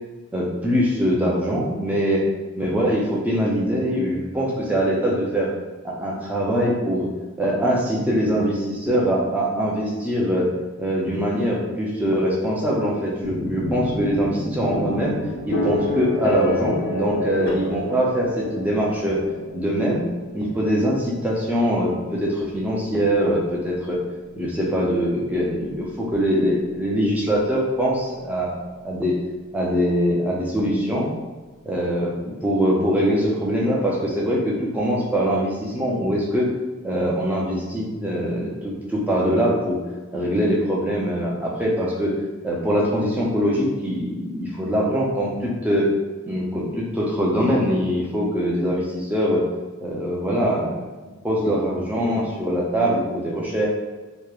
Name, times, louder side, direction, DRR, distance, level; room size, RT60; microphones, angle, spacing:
voice 1, 0.3-2.2 2.6-5.5 5.8-7.1 7.4-10.5 10.8-15.2 15.5-19.2 19.5-20.1 20.3-24.0 24.4-28.6 28.8-29.2 29.5-31.1 31.6-36.5 36.8-39.8 40.1-42.1 42.4-45.9 46.3-49.5 49.8-50.8 51.2-53.7, equal, 5° right, -4 dB, 0.4 m, -23 dB
sound 1, 13.2-27.0, left 1 dB, 70° left, 0.4 m, -30 dB
3.0 x 2.0 x 2.3 m, 1.2 s
head